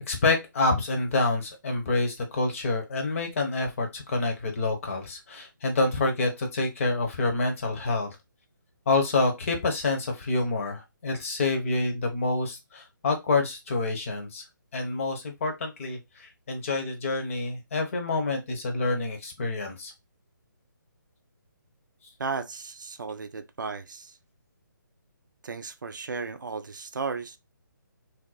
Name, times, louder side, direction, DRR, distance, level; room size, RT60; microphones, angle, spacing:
voice 1, 0.1-8.2 8.9-14.4 14.7-19.9, left 3 dB, 40° left, 0.9 m, -27 dB
voice 2, 22.2-24.1 25.4-27.4, right 4 dB, 65° right, 0.4 m, -34 dB
2.7 x 2.0 x 3.9 m
figure-of-eight pair, 145°, 11 cm